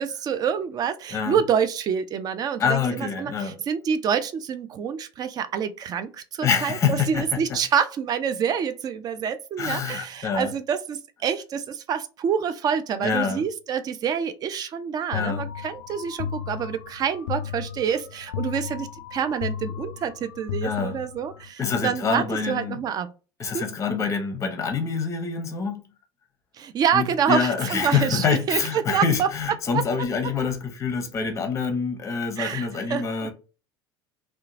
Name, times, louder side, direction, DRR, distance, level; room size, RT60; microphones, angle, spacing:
voice 1, 0.0-23.1 23.5-23.7 26.6-29.3 29.7-29.8 32.4-33.3, right 7 dB, 30° right, 0.3 m, -27 dB
voice 2, 1.1-1.4 2.6-3.6 6.4-7.6 9.6-10.5 13.0-13.5 15.1-15.5 20.6-21.0 21.6-22.8 23.4-25.8 26.9-33.3, left 6 dB, 25° left, 0.7 m, -26 dB
sound 1, 15.1-21.5, left 8 dB, 65° left, 0.4 m, -34 dB
2.7 x 2.2 x 2.5 m
figure-of-eight pair, 70°, 13 cm